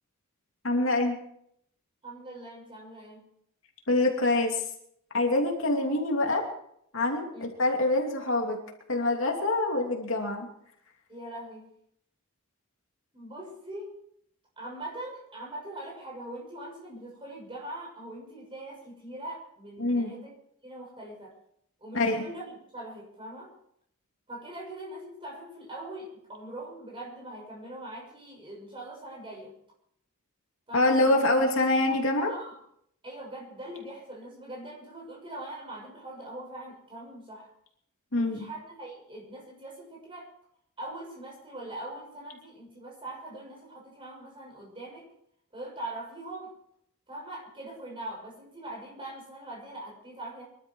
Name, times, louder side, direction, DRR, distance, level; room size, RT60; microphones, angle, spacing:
voice 1, 0.6-1.2 3.9-4.6 5.1-6.4 6.9-8.6 8.9-10.5 19.8-20.1 21.9-22.2 30.7-32.3 38.1-38.4, left 2 dB, 60° left, 1 dB, 2.8 m, -25 dB
voice 2, 2.0-3.2 7.3-7.4 11.1-11.6 13.1-13.9 14.6-20.3 20.6-21.3 21.8-22.5 22.7-23.5 24.3-29.5 30.7-31.3 32.3-32.5 33.0-37.5 38.1-40.3 40.8-45.1 45.5-46.5 47.1-50.4, right 1 dB, 25° right, -2 dB, 6.3 m, -42 dB
23.5 x 12.5 x 4.7 m, 0.72 s
head